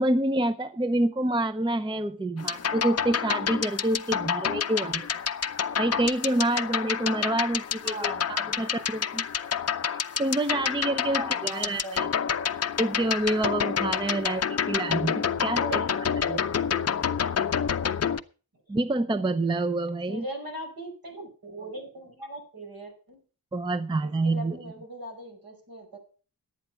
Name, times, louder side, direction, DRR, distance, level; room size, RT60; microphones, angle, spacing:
voice 1, 0.0-5.1 5.8-9.3 10.2-12.1 12.8-15.8 16.2-16.4 18.7-20.2 23.5-24.6, right 1 dB, 15° right, 0.5 m, -27 dB
sound 1, 2.4-18.2, left 7 dB, 40° left, 0.6 m, -28 dB
voice 2, 7.8-8.5 11.0-12.4 15.6-16.2 18.0-18.2 20.1-23.2 24.0-26.0, equal, 65° right, 5.2 m, -39 dB
12.0 x 8.9 x 5.7 m
wide cardioid pair, 130°, 38 cm